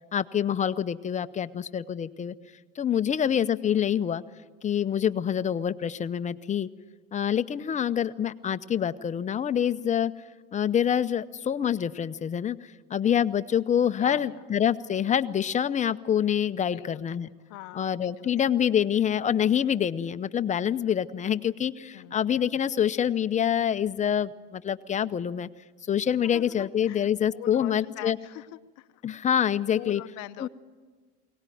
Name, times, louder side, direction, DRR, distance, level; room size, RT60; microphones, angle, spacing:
voice 1, 0.1-2.3 2.8-4.2 4.6-6.7 7.1-10.1 10.5-12.6 12.9-17.3 17.7-25.5 25.9-28.2 29.0-30.0 30.4-30.5, left 9 dB, 25° left, 12 dB, 0.7 m, -26 dB
voice 2, 14.0-14.4 16.7-17.2 17.5-18.3 21.9-22.2 26.2-29.0 29.7-30.5, left 17 dB, 65° left, 10 dB, 0.7 m, -43 dB
23.0 x 18.5 x 9.2 m, 1.4 s
cardioid pair, 125°, 30 cm